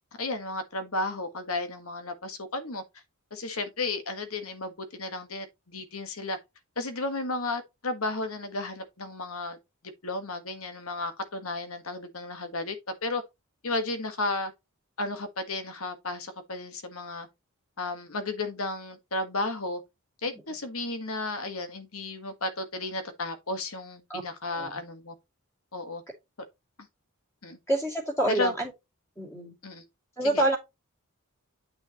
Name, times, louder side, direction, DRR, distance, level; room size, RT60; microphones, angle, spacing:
voice 1, 0.2-2.8 3.3-6.4 6.8-9.6 10.0-12.8 13.0-13.2 13.6-14.5 15.0-17.3 17.8-19.8 20.2-25.1 25.7-26.0 27.4-27.6 28.3-28.5 29.6-29.8 30.3-30.4, left 2 dB, 70° left, 1.5 m, -33 dB
voice 2, 27.7-28.7 29.2-29.5 30.2-30.6, right 1 dB, 10° left, 2.6 m, -27 dB
9.3 x 5.6 x 3.0 m
head